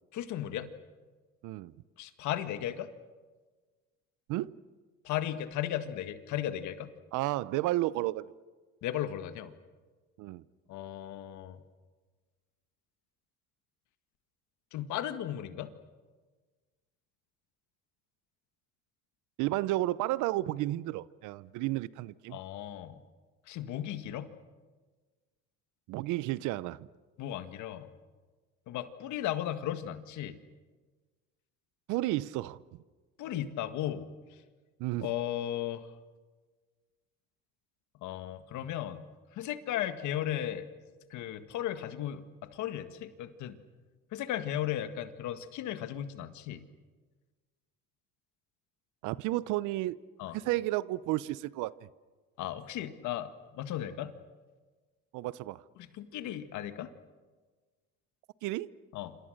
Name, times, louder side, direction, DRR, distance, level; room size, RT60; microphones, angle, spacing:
voice 1, 0.1-0.7 2.0-2.9 5.0-6.9 8.8-9.5 10.7-11.6 14.7-15.7 22.3-23.0 23.5-24.3 27.2-27.9 28.7-30.4 33.2-34.1 35.0-35.9 38.0-39.0 39.3-40.7 41.1-43.6 44.1-46.6 50.2-50.4 52.4-54.1 55.9-56.9 58.9-59.2, left 11 dB, 70° left, 1.8 m, -35 dB
voice 2, 1.4-1.7 4.3-4.5 7.1-8.3 10.2-10.4 19.4-22.4 25.9-26.8 31.9-32.6 34.8-35.1 49.0-50.0 50.3-51.7 55.1-55.6 58.4-58.7, right 17 dB, 75° right, 0.8 m, -32 dB
27.5 x 27.0 x 6.6 m
supercardioid pair, 90°, 30 cm